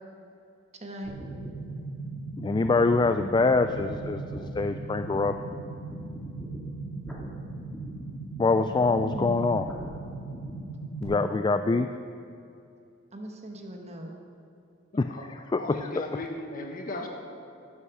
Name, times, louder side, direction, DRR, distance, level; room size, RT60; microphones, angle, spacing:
voice 1, 0.8-1.1 9.0-9.7 11.7-11.9 13.1-14.1, equal, 35° right, 2 dB, 1.4 m, -38 dB
sound 1, 1.0-11.0, right 2 dB, 5° left, 2.1 m, -38 dB
voice 2, 2.4-5.3 8.4-9.7 11.0-11.9 15.0-15.1 15.5-15.6, left 3 dB, 20° left, 9 dB, 0.3 m, -24 dB
voice 3, 14.9-15.3 15.6-17.1, left 2 dB, 45° left, 3 dB, 1.4 m, -37 dB
12.5 x 8.6 x 6.3 m, 2.6 s
head